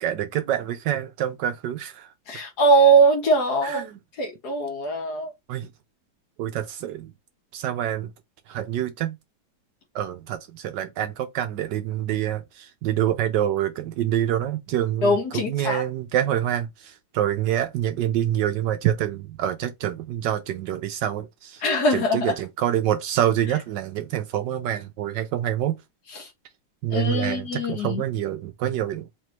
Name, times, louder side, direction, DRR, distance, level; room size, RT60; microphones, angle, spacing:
voice 1, 0.0-2.1 3.6-4.0 5.5-5.7 6.4-7.1 7.5-8.1 8.5-9.2 9.9-21.6 21.9-25.8 26.8-29.1, right 11 dB, 75° right, 1.1 m, -26 dB
voice 2, 2.3-3.9 4.2-5.3 15.0-15.8 21.6-22.3 26.2-26.3 26.9-28.0, right 2 dB, 60° left, 1.6 m, -21 dB
3.7 x 3.3 x 2.9 m
omnidirectional pair, 2.1 m